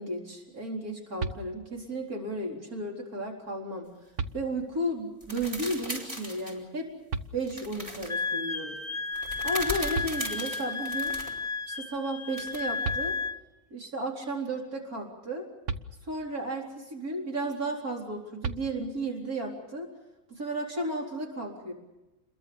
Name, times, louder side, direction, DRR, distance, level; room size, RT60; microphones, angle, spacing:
voice 1, 0.0-3.9 4.3-6.9 7.3-8.8 9.4-11.1 11.7-13.2 13.7-15.5 16.0-19.9 20.3-21.7, right 1 dB, 85° right, 0 dB, 4.5 m, -33 dB
sound 1, 1.2-1.9 3.5-3.6 4.1-4.9 7.1-7.9 9.6-9.7 9.9-10.8 12.5-12.6 12.8-13.6 15.6-16.5 18.4-19.2, right 4 dB, 60° right, 1.4 m, -37 dB
sound 2, 5.2-6.6 7.5-8.1 9.1-11.3 12.4-12.7, equal, 20° right, 5.1 m, -38 dB
Wind instrument woodwind instrument, 8.1-13.4, left 4 dB, 30° left, 1.2 m, -33 dB
29.0 x 22.5 x 7.1 m, 1.0 s
omnidirectional pair, 1.5 m